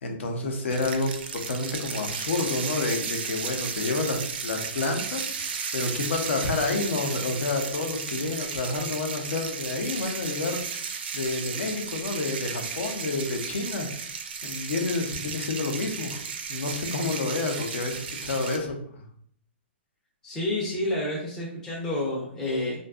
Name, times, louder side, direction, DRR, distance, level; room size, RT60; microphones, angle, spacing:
voice 1, 0.0-13.9 14.4-16.2 16.5-19.0, left 3 dB, 80° left, 3 dB, 0.6 m, -29 dB
sound 1, 0.7-18.6, right 6 dB, 60° right, 0.3 m, -34 dB
voice 2, 20.2-22.8, left 1 dB, 10° left, -6 dB, 0.4 m, -29 dB
2.5 x 2.2 x 2.3 m, 0.62 s
hypercardioid pair, 160°, 6 cm